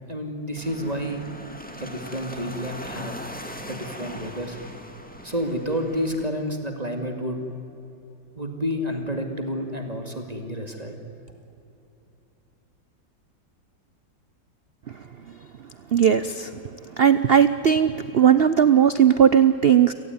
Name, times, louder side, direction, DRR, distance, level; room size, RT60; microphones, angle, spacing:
voice 1, 0.1-1.2 1.7-3.2 3.7-4.6 5.2-7.4 8.4-11.0, equal, 20° right, 4 dB, 2.4 m, -30 dB
sound 1, 0.6-6.3, equal, 5° left, 1.8 m, -39 dB
voice 2, 15.9-16.5 17.0-19.9, right 8 dB, 75° right, 12 dB, 0.5 m, -17 dB
29.0 x 17.5 x 9.5 m, 2.9 s
omnidirectional pair, 2.0 m